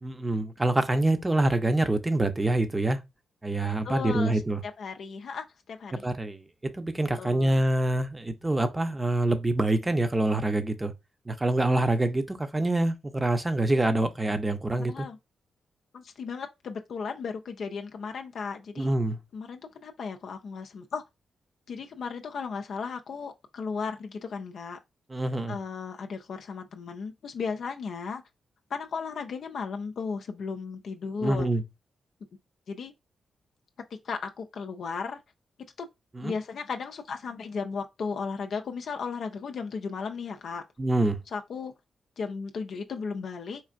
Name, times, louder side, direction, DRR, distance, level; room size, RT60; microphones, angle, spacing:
voice 1, 0.0-3.0 3.4-4.6 5.9-6.4 6.7-10.9 11.3-15.1 18.8-19.2 25.1-25.6 31.2-31.6 36.1-36.3 40.8-41.2, right 2 dB, 25° right, 0.7 m, -26 dB
voice 2, 3.8-6.0 7.2-7.6 14.9-15.2 15.9-18.9 19.3-21.0 21.7-24.8 25.5-28.2 28.7-31.5 32.7-32.9 34.0-35.2 35.8-35.9 36.2-40.6 41.3-41.7 42.2-43.6, left 5 dB, 70° left, 0.4 m, -35 dB
4.4 x 2.4 x 2.4 m
supercardioid pair, 45°, 0 cm